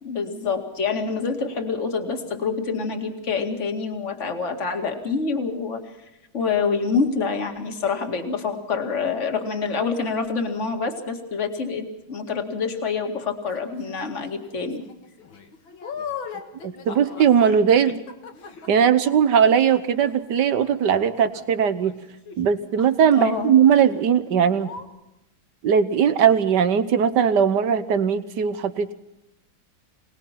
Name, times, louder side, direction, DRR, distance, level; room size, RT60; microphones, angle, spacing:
voice 1, 0.0-5.8 6.3-14.8 23.1-23.5, left 5 dB, 35° left, 5 dB, 2.4 m, -26 dB
sound 1, 13.5-14.0 14.5-22.5 22.8-23.4 23.7-24.0 24.2-24.3 24.6-24.9, left 6 dB, 75° left, 2.6 m, -40 dB
voice 2, 16.6-18.0 18.7-22.0 22.4-24.7 25.6-28.9, right 7 dB, 60° right, 12 dB, 1.6 m, -19 dB
25.0 x 19.5 x 5.9 m, 0.92 s
omnidirectional pair, 2.2 m